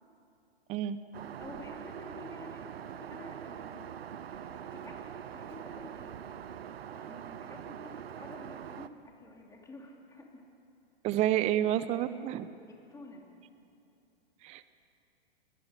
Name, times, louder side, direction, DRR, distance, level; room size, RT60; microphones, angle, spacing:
Aircraft, 1.1-8.9, right 9 dB, 70° right, 1.0 m, -43 dB
voice 1, 1.4-4.0 4.4-6.2 6.9-10.4 12.7-13.3, left 2 dB, 10° left, 0 dB, 3.0 m, -50 dB
voice 2, 11.0-12.5 14.4-14.7, right 12 dB, 20° right, 14 dB, 0.6 m, -29 dB
21.5 x 19.0 x 6.5 m, 2.7 s
hypercardioid pair, 120°, 31 cm